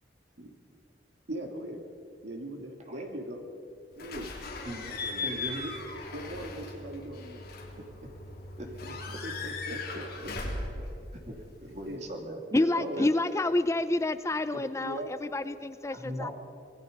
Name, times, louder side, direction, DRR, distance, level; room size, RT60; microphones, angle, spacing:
voice 1, 1.3-1.8 2.2-3.5 4.0-4.3 4.8-5.7 6.1-7.4 8.8-9.0 9.2-10.6 11.6-12.1 12.7-13.1 14.8-15.1, right 1 dB, 65° right, 3 dB, 2.5 m, -40 dB
Slam / Squeak / Alarm, 4.0-12.0, left 3 dB, 55° left, 3.7 m, -38 dB
voice 2, 5.2-5.7 8.6-8.7 10.8-10.9 11.2-13.1 15.9-16.3, right 1 dB, 40° right, 2 dB, 2.6 m, -39 dB
voice 3, 12.5-16.3, left 2 dB, 15° left, 12 dB, 0.4 m, -28 dB
25.5 x 20.0 x 5.3 m, 2.6 s
head